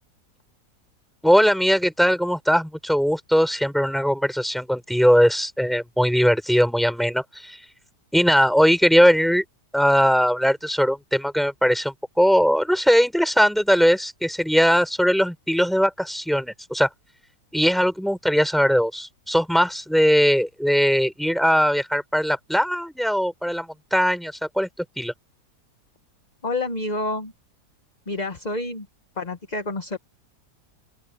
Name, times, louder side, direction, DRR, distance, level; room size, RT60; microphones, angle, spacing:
voice 1, 1.2-7.7 8.1-9.4 9.7-16.9 17.5-25.1, equal, ahead, 6.5 m, -20 dB
voice 2, 26.4-27.3 28.1-28.9 29.2-30.0, left 2 dB, 25° left, 1.4 m, -28 dB
open air
omnidirectional pair, 1.7 m